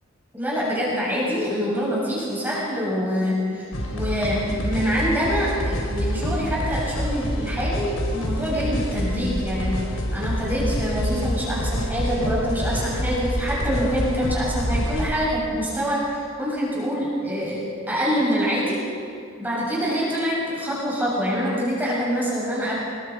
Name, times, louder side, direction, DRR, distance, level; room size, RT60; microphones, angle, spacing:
voice 1, 0.3-9.7 10.1-18.8 19.4-22.8, equal, 10° right, -6 dB, 7.6 m, -25 dB
sound 1, 3.7-15.1, equal, 75° left, 4.3 m, -27 dB
26.5 x 22.0 x 4.9 m, 2.2 s
head